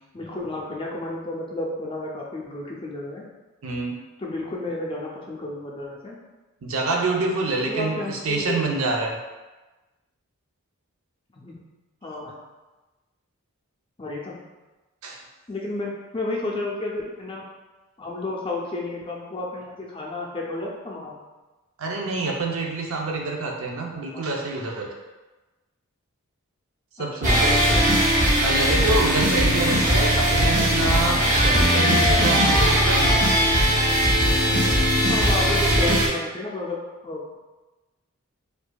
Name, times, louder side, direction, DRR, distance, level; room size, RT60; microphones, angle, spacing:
voice 1, 0.1-3.2 4.2-6.2 7.7-8.6 11.3-11.6 12.0-12.4 14.0-14.4 15.5-17.4 18.0-21.2 23.9-24.3 27.2-28.1 35.1-36.8 37.0-37.4, left 2 dB, 25° left, -3 dB, 0.5 m, -32 dB
voice 2, 3.6-4.0 6.6-9.2 15.0-15.2 21.8-24.9 27.0-27.6 28.4-33.4, right 3 dB, 65° right, 0 dB, 0.6 m, -27 dB
sound 1, 27.2-36.1, equal, 35° right, 0.8 m, -19 dB
4.5 x 2.5 x 2.3 m, 1.1 s
head